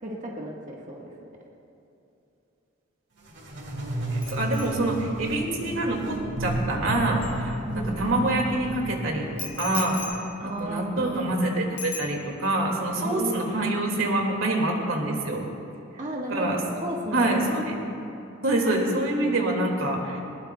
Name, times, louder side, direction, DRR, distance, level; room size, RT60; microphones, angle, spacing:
voice 1, 0.0-1.1 7.7-8.1 10.4-11.4 13.0-13.4 16.0-17.7, right 1 dB, 40° right, -2 dB, 1.4 m, -34 dB
sound 1, 3.3-10.1, right 1 dB, 60° right, 2.2 m, -32 dB
voice 2, 4.1-9.3 9.6-15.4 16.3-16.6 17.1-17.8 18.4-20.2, right 1 dB, 85° right, 1 dB, 2.1 m, -26 dB
Bicycle bell, 4.2-8.0 9.4-11.4 11.8-12.6 12.9-13.2, left 5 dB, 25° left, 1.0 m, -41 dB
20.5 x 20.0 x 2.3 m, 2.8 s
head